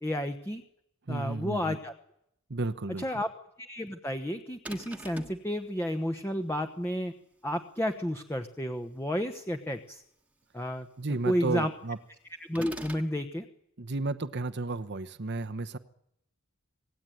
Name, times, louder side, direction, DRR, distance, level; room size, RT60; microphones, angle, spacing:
voice 1, 0.0-0.6 1.1-1.9 3.0-3.3 3.7-7.1 7.4-10.0 10.5-10.9 11.2-11.7 12.4-13.4, equal, 10° left, 5 dB, 1.0 m, -31 dB
voice 2, 1.1-1.8 2.5-3.0 11.0-12.0 13.8-15.8, right 3 dB, 50° right, 11 dB, 1.0 m, -33 dB
sound 1, 4.6-5.4 12.5-13.1, right 1 dB, 5° right, 1.4 m, -42 dB
26.5 x 18.0 x 9.2 m, 0.79 s
head